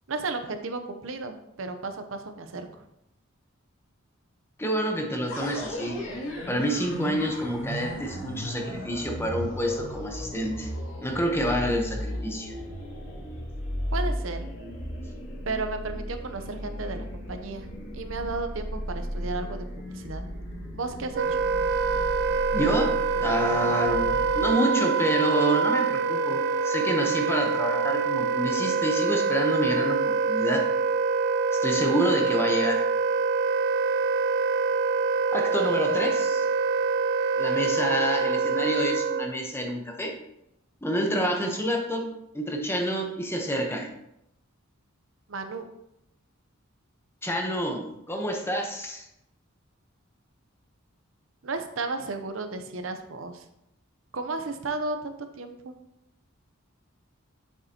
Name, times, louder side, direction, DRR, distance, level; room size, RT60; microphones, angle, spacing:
voice 1, 0.1-2.7 13.9-14.4 15.5-17.7 17.9-20.2 20.7-21.4 45.3-45.7 51.4-53.4 54.1-55.7, right 3 dB, 70° right, 7 dB, 0.8 m, -33 dB
voice 2, 4.6-6.0 6.5-10.7 11.0-12.5 22.5-30.7 31.5-32.9 35.3-36.5 37.4-40.2 40.8-42.1 42.3-43.9 47.2-49.1, equal, 10° left, 3 dB, 1.0 m, -28 dB
sound 1, 5.3-24.5, equal, 85° left, 2.3 m, -35 dB
Wind instrument woodwind instrument, 21.1-39.3, right 4 dB, 55° right, 0.3 m, -25 dB
7.9 x 6.6 x 2.9 m, 0.83 s
head